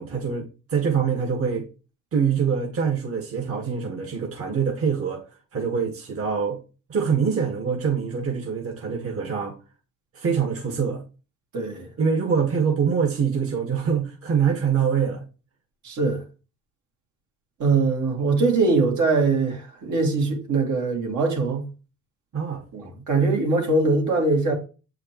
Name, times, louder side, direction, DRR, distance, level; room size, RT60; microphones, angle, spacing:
voice 1, 0.0-1.7 2.1-5.2 5.5-6.6 6.9-9.5 10.1-11.0 12.0-15.2 22.3-22.6, right 6 dB, 50° right, 1.6 m, -24 dB
voice 2, 11.5-11.9 15.8-16.2 17.6-21.7 22.7-24.5, right 3 dB, 75° right, 2.7 m, -22 dB
8.0 x 4.8 x 3.1 m
cardioid pair, 90°, 30 cm